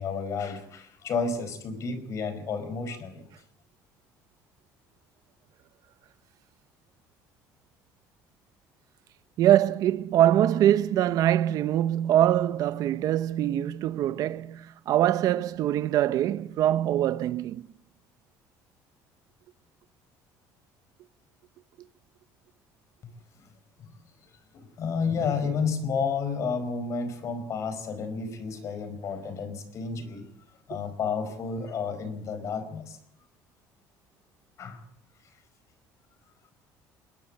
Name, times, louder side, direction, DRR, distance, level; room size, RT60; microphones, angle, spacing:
voice 1, 0.0-3.2 23.0-23.1 23.4-23.5 23.8-24.0 24.5-30.3 30.7-33.0 34.6-34.8, left 5 dB, 45° left, 4.8 m, -31 dB
voice 2, 9.4-17.7, right 12 dB, 60° right, 1.0 m, -23 dB
21.0 x 21.0 x 8.7 m
cardioid pair, 135°, 7 cm